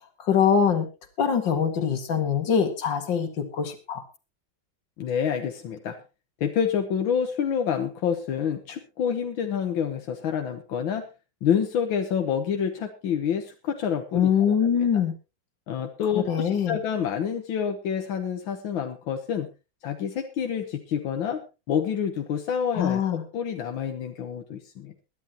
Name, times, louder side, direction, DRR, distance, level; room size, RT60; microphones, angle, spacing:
voice 1, 0.2-0.9 1.2-4.0 14.1-15.1 16.1-16.8 22.7-23.2, left 7 dB, 70° left, 7 dB, 2.5 m, -23 dB
voice 2, 5.0-6.0 6.4-11.0 11.4-14.9 15.7-19.5 19.8-21.4 21.7-25.0, left 8 dB, 85° left, 5 dB, 1.9 m, -28 dB
22.0 x 11.0 x 2.9 m, 0.29 s
omnidirectional pair, 2.1 m